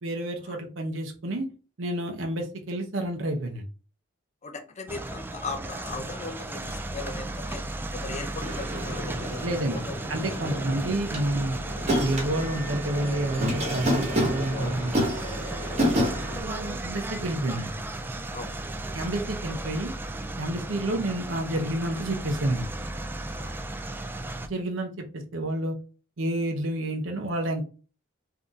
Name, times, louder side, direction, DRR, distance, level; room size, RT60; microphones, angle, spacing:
voice 1, 0.0-1.5 1.8-3.6 9.4-9.8 10.1-11.6 12.0-14.9 15.8-17.7 18.9-19.9 20.4-22.7 24.4-25.8 26.2-27.6, right 1 dB, 65° right, 0.7 m, -29 dB
voice 2, 4.4-7.7 7.9-10.6 14.5-15.3 18.3-18.5 23.3-23.6, left 3 dB, 35° left, 0.6 m, -39 dB
sound 1, 4.9-24.5, right 2 dB, 10° right, 0.3 m, -35 dB
sound 2, 8.4-16.4, equal, 35° right, 1.2 m, -30 dB
3.9 x 2.7 x 3.6 m
head